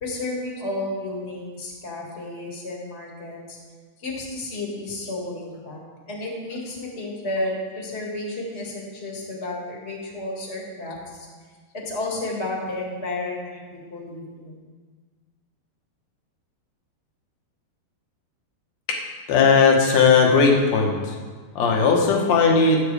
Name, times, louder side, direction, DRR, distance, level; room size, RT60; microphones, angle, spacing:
voice 1, 0.0-3.6 4.0-5.8 6.1-11.3 11.8-14.6, left 2 dB, 30° left, -3 dB, 1.2 m, -32 dB
voice 2, 19.3-21.2 21.6-22.8, left 5 dB, 65° left, 0 dB, 1.8 m, -17 dB
14.5 x 8.5 x 3.4 m, 1.5 s
omnidirectional pair, 4.7 m